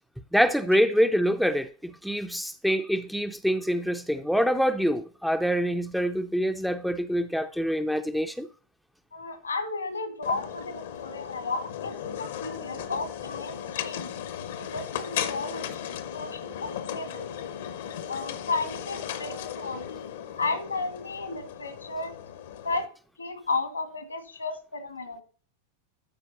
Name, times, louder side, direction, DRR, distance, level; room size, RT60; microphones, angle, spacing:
voice 1, 0.3-8.5, equal, ahead, 0.5 m, -25 dB
voice 2, 9.1-14.2 14.6-17.3 18.1-19.8 20.4-22.1 22.6-22.9 23.2-25.2, left 3 dB, 80° left, 1.7 m, -33 dB
sound 1, 10.2-22.9, left 9 dB, 60° left, 0.8 m, -36 dB
12.0 x 4.6 x 4.1 m
figure-of-eight pair, 90°, 0 cm